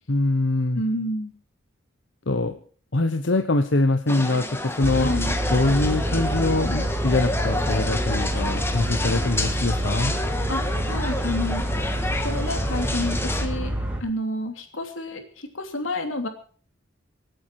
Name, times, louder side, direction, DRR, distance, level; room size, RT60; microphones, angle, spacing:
voice 1, 0.1-0.8 2.3-2.6 2.9-5.1 5.5-10.1, left 2 dB, 70° left, 7 dB, 1.0 m, -23 dB
voice 2, 0.7-1.3 4.9-5.3 10.5-11.6 12.2-16.3, left 1 dB, 90° left, 5 dB, 3.0 m, -29 dB
sound 1, 4.1-13.5, left 2 dB, 10° left, 1.5 m, -30 dB
sound 2, 4.8-14.0, right 1 dB, 10° right, 2.7 m, -27 dB
26.0 x 9.3 x 4.7 m, 0.43 s
head